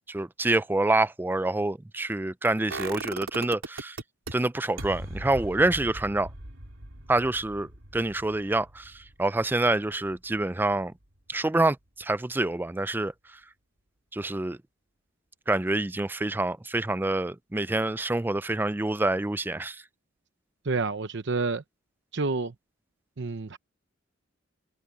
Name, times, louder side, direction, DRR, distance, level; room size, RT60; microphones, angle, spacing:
voice 1, 0.0-4.0 4.3-6.3 7.1-10.9 11.3-13.4 14.1-14.6 15.5-19.8, right 2 dB, 10° right, 0.4 m, -27 dB
sound 1, 2.7-4.3 4.8-10.6 10.9-11.0, right 2 dB, 85° right, 3.4 m, -39 dB
voice 2, 20.6-21.6 22.1-22.5 23.2-23.6, right 3 dB, 60° right, 0.8 m, -28 dB
head